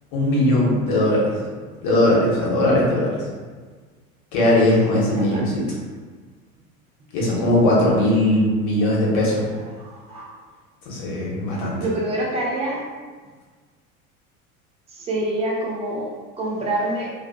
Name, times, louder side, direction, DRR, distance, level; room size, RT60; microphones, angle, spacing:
voice 1, 0.1-1.3 1.8-3.3 4.3-5.7 7.1-9.4 10.8-11.8, left 1 dB, 45° left, -4 dB, 0.9 m, -19 dB
voice 2, 9.7-10.3 11.8-12.8 14.9-16.1 16.4-17.1, right 1 dB, 15° right, -3 dB, 0.5 m, -26 dB
2.5 x 2.4 x 2.2 m, 1.5 s
figure-of-eight pair, 75°, 43 cm